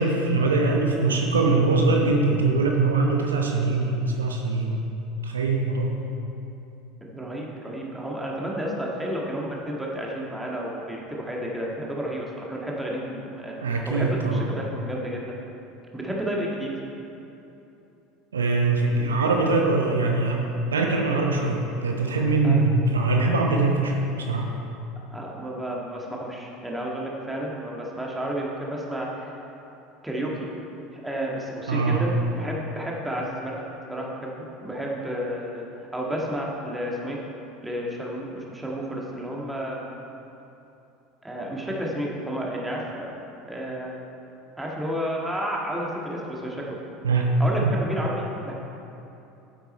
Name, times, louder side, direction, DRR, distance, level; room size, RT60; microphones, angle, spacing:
voice 1, 0.0-4.9 5.2-6.0 13.6-14.5 18.3-23.9 24.3-24.5 31.7-32.0 47.0-47.3 47.6-47.7, right 3 dB, 80° right, 1 dB, 0.8 m, -22 dB
voice 2, 7.0-15.3 15.9-16.7 22.4-22.7 25.1-29.3 30.0-30.5 30.9-33.6 33.9-35.7 35.9-37.2 37.6-39.8 41.2-44.0 44.6-46.8 47.4-48.5, equal, 10° right, -3 dB, 1.9 m, -31 dB
9.6 x 8.0 x 4.4 m, 2.9 s
figure-of-eight pair, 75°, 0 cm